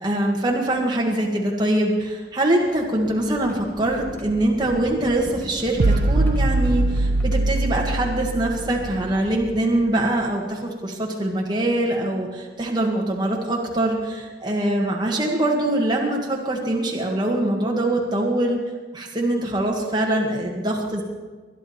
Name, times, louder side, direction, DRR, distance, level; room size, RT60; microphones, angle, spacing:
voice 1, 0.0-18.6 18.9-21.0, right 1 dB, 25° right, -1 dB, 1.7 m, -23 dB
sound 1, 1.3-10.6 11.5-11.6 13.1-13.3 14.0-14.2 15.8-15.9 16.4-16.6, equal, 10° left, 1.6 m, -40 dB
sound 2, 5.8-9.2, right 2 dB, 65° right, 0.6 m, -22 dB
21.0 x 11.0 x 4.3 m, 1.4 s
head